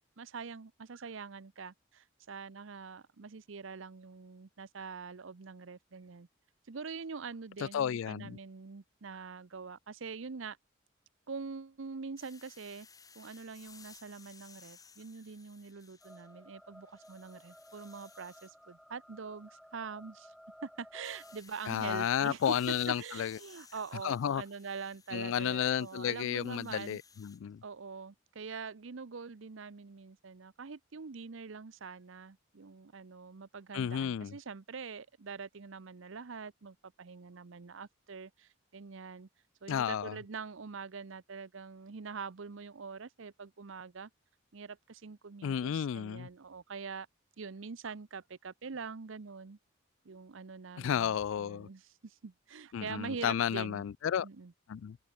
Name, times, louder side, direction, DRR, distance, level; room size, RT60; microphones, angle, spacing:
voice 1, 0.2-6.3 6.7-10.6 11.3-12.9 13.1-20.3 20.6-27.0 27.6-39.3 39.6-44.1 44.5-47.1 47.4-49.6 50.0-53.8 54.2-54.5, right 5 dB, 70° right, 0.7 m, -44 dB
voice 2, 7.6-8.4 21.7-23.4 24.0-24.4 25.1-27.6 33.7-34.3 39.7-40.2 45.4-46.3 50.8-51.7 52.7-54.3 54.7-55.0, left 8 dB, 75° left, 0.3 m, -32 dB
sound 1, 12.2-16.5 16.9-18.5 21.0-27.4, left 6 dB, 15° left, 3.3 m, -58 dB
sound 2, 16.0-21.4, equal, ahead, 2.2 m, -56 dB
head